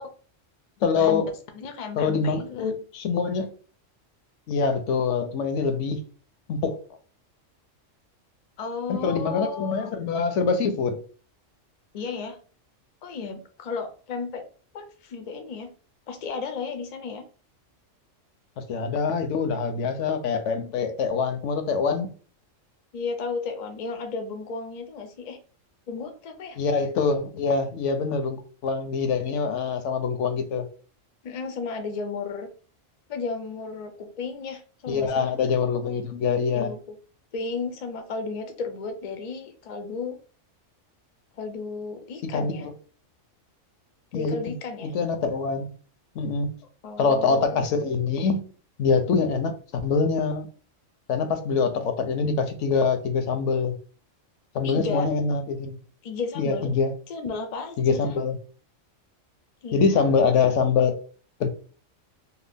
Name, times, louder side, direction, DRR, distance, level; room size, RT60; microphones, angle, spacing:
voice 1, 0.8-1.2 2.0-3.5 4.5-6.0 6.5-6.8 8.9-11.0 18.6-22.1 26.6-30.7 34.9-36.7 42.3-42.7 44.1-44.6 44.8-45.7 46.2-46.5 47.0-48.4 48.8-49.5 49.8-50.5 51.1-53.7 54.5-55.7 56.4-56.9 57.8-58.3 59.7-61.0 61.4-61.5, left 5 dB, 70° left, 0.9 m, -24 dB
voice 2, 1.5-2.7 8.6-9.9 11.9-12.4 13.0-14.4 14.7-15.7 16.1-17.2 22.9-25.4 25.9-26.6 31.2-32.5 33.1-35.3 36.5-36.8 37.3-40.1 41.4-42.7 44.1-44.9 46.8-47.6 54.6-55.1 56.0-56.7 57.1-58.2 59.6-59.8, left 4 dB, 55° left, 0.4 m, -33 dB
2.8 x 2.3 x 3.4 m
omnidirectional pair, 1.3 m